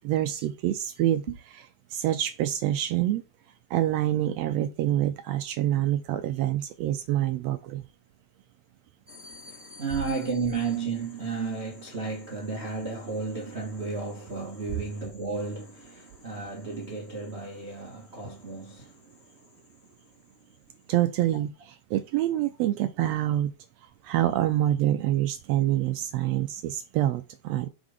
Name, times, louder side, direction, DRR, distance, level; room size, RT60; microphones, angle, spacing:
voice 1, 0.0-1.3 1.9-3.2 3.7-7.8 20.9-23.5 24.0-27.7, right 13 dB, 85° right, 1.5 m, -26 dB
voice 2, 9.1-19.2, right 4 dB, 65° right, 0.6 m, -33 dB
6.1 x 3.8 x 4.9 m
omnidirectional pair, 3.4 m